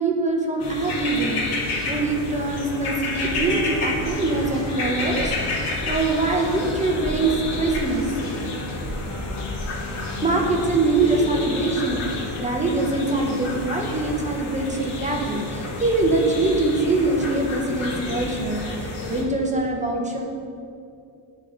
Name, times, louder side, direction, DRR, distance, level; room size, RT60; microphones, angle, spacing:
voice 1, 0.0-1.4 1.9-8.1 10.2-12.0 12.4-20.2, right 3 dB, 15° right, 0 dB, 0.5 m, -23 dB
sound 1, 0.6-19.2, left 2 dB, 85° left, 1.3 m, -30 dB
sound 2, 3.1-12.3, left 1 dB, 35° left, 1.1 m, -36 dB
9.8 x 3.6 x 3.8 m, 2.5 s
cardioid pair, 175°, 49 cm